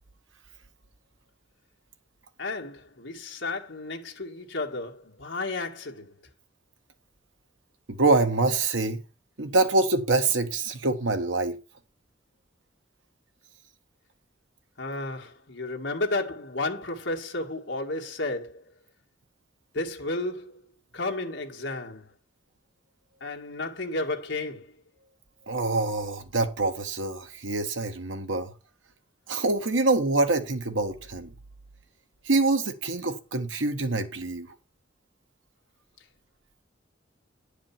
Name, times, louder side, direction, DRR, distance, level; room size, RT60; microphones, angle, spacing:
voice 1, 2.4-6.1 14.8-18.6 19.7-20.6 20.9-22.1 23.2-24.8, left 2 dB, 70° left, 1.9 m, -32 dB
voice 2, 7.9-9.0 9.4-11.6 25.5-28.5 29.3-31.3 32.2-34.5, right 3 dB, 80° right, 1.4 m, -25 dB
10.5 x 4.9 x 6.0 m
head